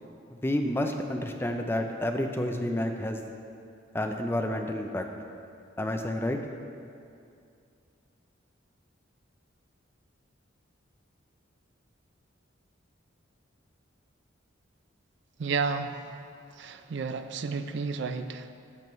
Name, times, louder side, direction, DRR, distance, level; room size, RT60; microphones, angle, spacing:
voice 1, 0.4-3.2 3.9-5.0 5.8-6.4, left 1 dB, 10° left, 4 dB, 0.4 m, -29 dB
voice 2, 15.4-16.1 16.5-18.5, right 4 dB, 60° right, 9 dB, 0.4 m, -32 dB
12.0 x 6.0 x 3.1 m, 2.5 s
head